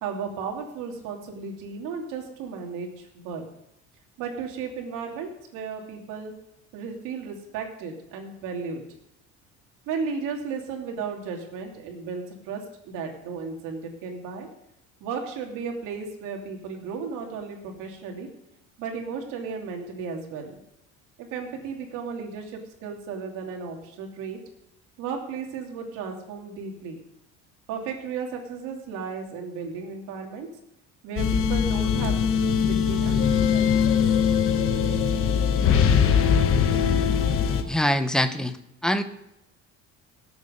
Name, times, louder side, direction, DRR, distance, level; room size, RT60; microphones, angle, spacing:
voice 1, 0.0-3.4 4.2-6.3 6.7-8.8 9.9-14.5 15.0-18.3 18.8-20.5 21.2-24.4 25.0-27.0 27.7-30.5 31.0-34.0, right 5 dB, 85° right, 2 dB, 2.9 m, -34 dB
sound 1, 31.2-37.6, left 7 dB, 45° left, 1.2 m, -21 dB
voice 2, 37.7-38.6 38.8-39.0, equal, ahead, 10 dB, 0.5 m, -23 dB
17.5 x 8.1 x 5.2 m, 0.84 s
cardioid pair, 175°, 31 cm